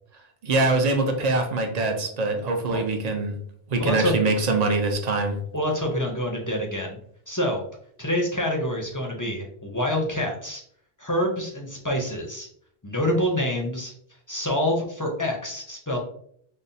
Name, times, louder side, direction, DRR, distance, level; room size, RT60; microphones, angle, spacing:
voice 1, 0.4-3.4 3.7-5.4, right 3 dB, 45° right, 4 dB, 0.6 m, -23 dB
voice 2, 3.8-4.1 5.5-7.0 7.3-7.6 8.0-10.6 11.0-12.5 12.8-13.9 14.3-16.0, left 1 dB, 25° left, 0 dB, 0.4 m, -26 dB
5.5 x 2.0 x 2.6 m, 0.66 s
omnidirectional pair, 1.0 m